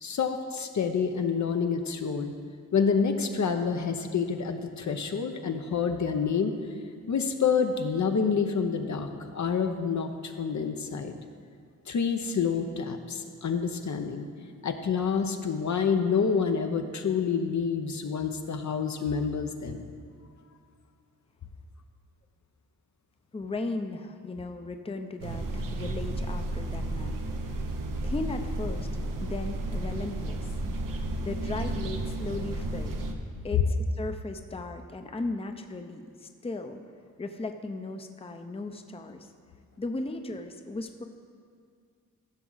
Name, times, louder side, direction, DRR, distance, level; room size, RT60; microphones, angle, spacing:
voice 1, 0.0-2.3 2.7-6.6 7.1-11.2 11.9-14.3 14.6-19.9, left 6 dB, 60° left, 5 dB, 0.8 m, -28 dB
voice 2, 23.3-27.2 28.0-30.5 31.2-33.0 33.4-36.8 37.2-39.3 39.8-41.0, left 2 dB, 20° left, 6 dB, 0.6 m, -36 dB
sound 1, 25.2-33.1, right 1 dB, 80° right, 0.9 m, -32 dB
15.0 x 6.1 x 4.0 m, 2.2 s
cardioid pair, 65°, 32 cm